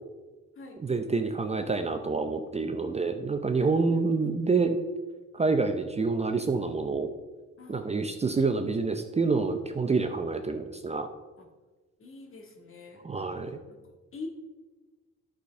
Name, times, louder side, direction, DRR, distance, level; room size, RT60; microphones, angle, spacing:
voice 1, 0.8-4.8 5.3-7.1 7.7-11.1 13.0-13.5, right 4 dB, 20° right, 6 dB, 0.6 m, -27 dB
voice 2, 3.6-4.3 7.6-7.9 11.4-11.5 12.0-14.3, left 3 dB, 45° left, 2 dB, 1.9 m, -45 dB
10.5 x 5.0 x 5.2 m, 1.3 s
cardioid pair, 90°, 30 cm